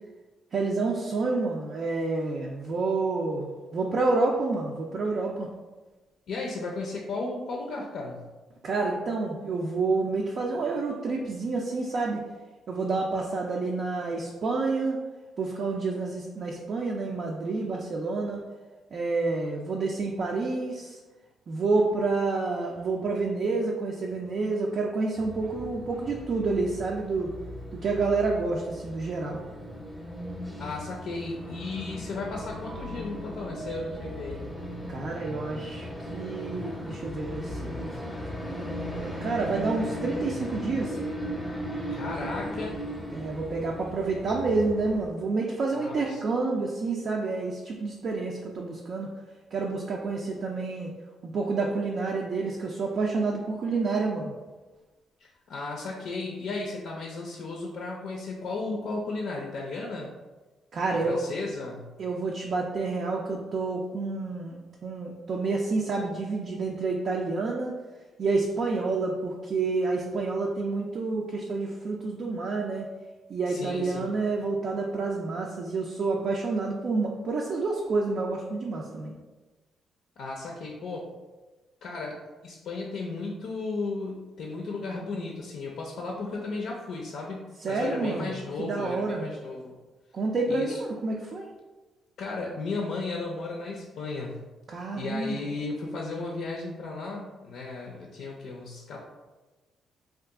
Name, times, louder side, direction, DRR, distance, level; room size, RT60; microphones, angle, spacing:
voice 1, 0.5-5.5 8.6-12.2 12.7-15.0 15.4-18.4 18.9-21.0 21.5-27.3 27.8-29.4 34.9-37.9 38.4-41.0 43.1-49.1 49.5-50.9 51.2-54.3 60.7-61.2 62.0-67.7 68.2-72.9 73.3-79.1 87.6-88.3 88.6-89.3 90.1-91.5 94.7-95.4, right 3 dB, 55° right, -1 dB, 0.4 m, -29 dB
voice 2, 6.3-8.2 30.6-34.4 41.9-42.8 45.7-46.2 55.2-60.1 60.9-61.9 73.5-74.1 80.2-81.1 81.8-89.7 90.5-90.8 92.2-94.4 94.9-99.0, left 3 dB, 70° left, -1 dB, 0.4 m, -35 dB
sound 1, 25.2-45.1, equal, ahead, 0.7 m, -37 dB
sound 2, 32.3-36.0, right 1 dB, 85° right, 1.0 m, -45 dB
2.8 x 2.4 x 3.5 m, 1.2 s
cardioid pair, 90°, 0 cm